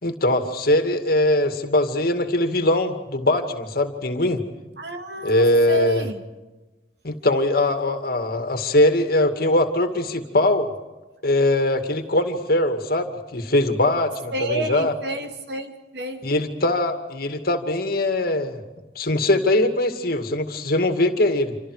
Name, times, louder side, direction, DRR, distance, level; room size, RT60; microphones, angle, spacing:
voice 1, 0.0-4.4 5.2-6.1 7.0-10.7 11.2-14.9 16.2-18.6 19.0-21.6, left 1 dB, 60° left, 7 dB, 2.3 m, -21 dB
voice 2, 4.8-6.2 14.3-16.2, right 1 dB, 70° right, 5 dB, 2.6 m, -30 dB
28.0 x 26.5 x 5.0 m, 1.1 s
head